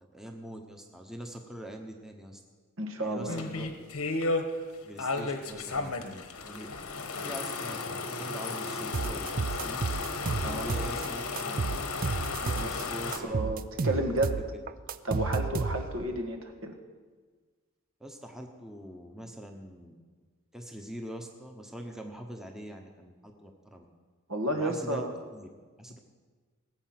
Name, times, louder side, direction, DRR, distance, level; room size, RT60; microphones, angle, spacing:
voice 1, 0.1-2.4 3.0-3.7 4.8-6.7 7.2-9.8 10.4-11.8 12.4-14.1 18.0-20.0 20.5-23.9 24.5-25.0 25.3-25.5 25.8-26.0, equal, ahead, 3 dB, 1.0 m, -43 dB
voice 2, 2.8-3.6 10.4-10.7 12.6-12.7 13.2-14.3 15.0-16.8 24.3-25.1, right 1 dB, 65° right, 4 dB, 1.6 m, -32 dB
sound 1, 3.3-4.4 5.0-13.2, left 3 dB, 90° left, 1.3 m, -34 dB
sound 2, 8.9-11.1 11.4-12.8 13.1-16.1, right 4 dB, 40° right, 0.4 m, -32 dB
19.5 x 8.2 x 6.0 m, 1.5 s
head